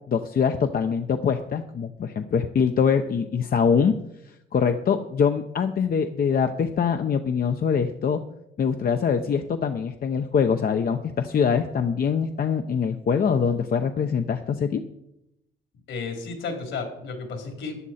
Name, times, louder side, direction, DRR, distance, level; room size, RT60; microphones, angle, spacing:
voice 1, 0.1-3.9 4.5-8.2 8.6-14.8, left 6 dB, 50° left, 7 dB, 0.8 m, -23 dB
voice 2, 15.9-17.9, left 4 dB, 75° left, 3 dB, 3.2 m, -33 dB
14.0 x 10.0 x 4.2 m, 0.83 s
cardioid pair, 90°, 20 cm